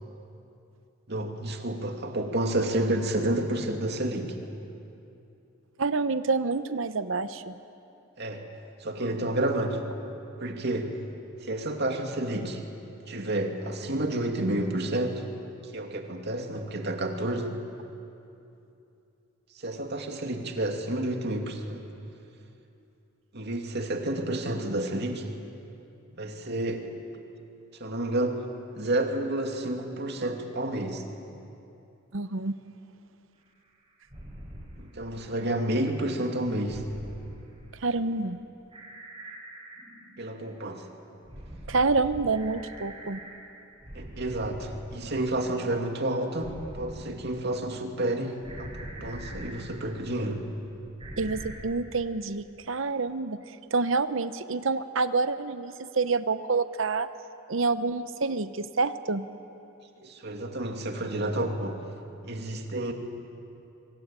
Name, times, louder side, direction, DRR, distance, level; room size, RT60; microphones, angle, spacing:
voice 1, 1.1-4.4 8.2-8.5 8.8-9.8 10.4-11.0 11.4-12.6 13.1-15.2 15.7-17.5 19.5-21.8 23.3-25.3 26.1-26.9 27.8-28.5 28.8-31.0 34.8-36.8 40.2-40.9 43.9-50.4 60.0-61.8 62.2-62.9, right 1 dB, 55° right, 4 dB, 2.6 m, -30 dB
voice 2, 5.8-7.5 32.1-32.6 37.8-38.4 41.7-43.2 51.2-53.4 53.7-57.1 57.5-59.3, right 4 dB, 70° right, 12 dB, 0.9 m, -27 dB
sound 1, 34.1-34.7 36.6-37.3 38.7-40.3 41.2-43.4 43.8-51.6, right 1 dB, 25° right, 7.7 m, -44 dB
25.5 x 24.5 x 9.0 m, 2.8 s
head